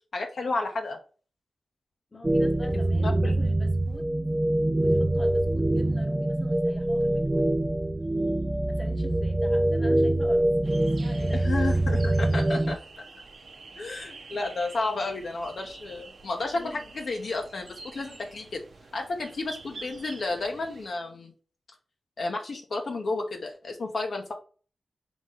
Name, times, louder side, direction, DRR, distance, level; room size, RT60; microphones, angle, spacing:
voice 1, 0.1-1.0 3.0-3.4 11.4-13.0 13.8-18.6 18.9-21.3 22.2-24.3, left 3 dB, 70° left, 0.8 m, -32 dB
voice 2, 2.1-4.1 4.8-7.6 8.0-8.3 8.7-10.5 10.8-11.5 16.5-16.9, left 2 dB, 40° left, 0.9 m, -44 dB
sound 1, 2.2-12.8, right 1 dB, 25° right, 0.4 m, -24 dB
sound 2, 10.6-20.9, right 3 dB, 65° right, 0.7 m, -47 dB
4.0 x 3.0 x 3.8 m
cardioid pair, 40°, 0 cm